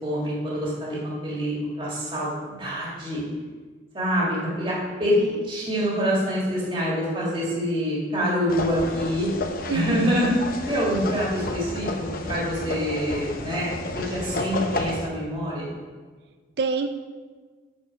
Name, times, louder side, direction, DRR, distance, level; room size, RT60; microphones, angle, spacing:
voice 1, 0.0-3.2 3.9-9.3 9.7-10.4 10.7-15.7, equal, 25° right, -5 dB, 1.8 m, -26 dB
sound 1, 8.5-15.1, left 2 dB, 50° left, 0.7 m, -31 dB
voice 2, 9.7-10.2 16.6-16.9, right 4 dB, 60° right, 7 dB, 0.4 m, -27 dB
9.5 x 4.3 x 5.8 m, 1.4 s
head